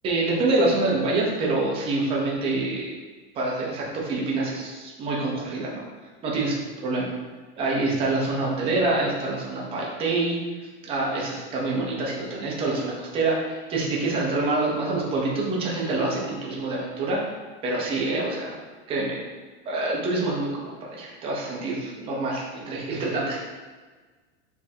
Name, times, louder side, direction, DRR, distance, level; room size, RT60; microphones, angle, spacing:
voice 1, 0.0-2.9 3.3-5.9 6.2-6.6 6.8-7.1 7.6-10.4 10.8-17.2 17.6-18.6 18.9-19.2 19.7-23.4, right 2 dB, 15° right, -3 dB, 0.7 m, -26 dB
5.1 x 3.5 x 2.8 m, 1.4 s
supercardioid pair, 170°, 32 cm